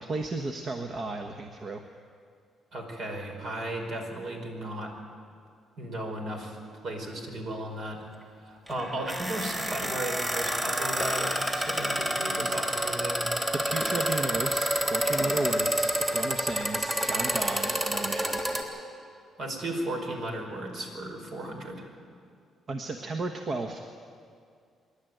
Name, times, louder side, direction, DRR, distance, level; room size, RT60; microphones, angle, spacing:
voice 1, 0.0-1.8 13.5-18.4 22.7-23.9, right 2 dB, 45° right, 4 dB, 1.3 m, -34 dB
voice 2, 2.7-4.9 5.8-6.6 6.8-8.1 8.3-13.3 19.4-21.8, right 1 dB, 65° right, 2 dB, 5.0 m, -35 dB
sound 1, 8.7-18.6, equal, 20° right, 3.1 m, -28 dB
26.0 x 11.5 x 9.3 m, 2.2 s
cardioid pair, 90°, 0 cm